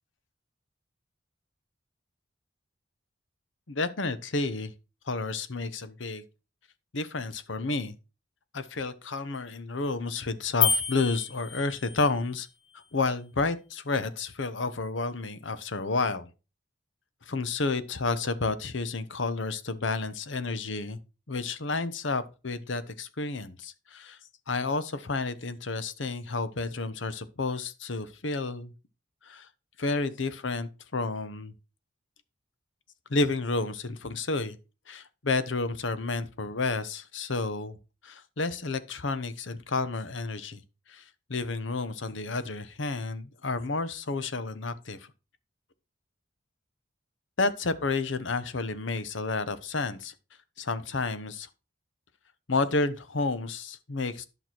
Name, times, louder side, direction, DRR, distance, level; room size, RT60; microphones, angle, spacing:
voice 1, 3.7-4.7 5.1-6.2 6.9-7.9 8.5-12.5 12.7-16.3 17.3-21.0 21.3-24.2 24.5-28.7 29.2-29.5 29.8-31.5 33.1-34.6 34.9-37.8 38.0-40.6 40.9-41.0 41.3-45.1 47.4-50.1 50.6-51.5 52.5-54.2, left 3 dB, 70° left, 0.9 m, -31 dB
sound 1, 10.6-12.1, left 7 dB, 90° left, 1.5 m, -28 dB
11.0 x 6.1 x 4.5 m
head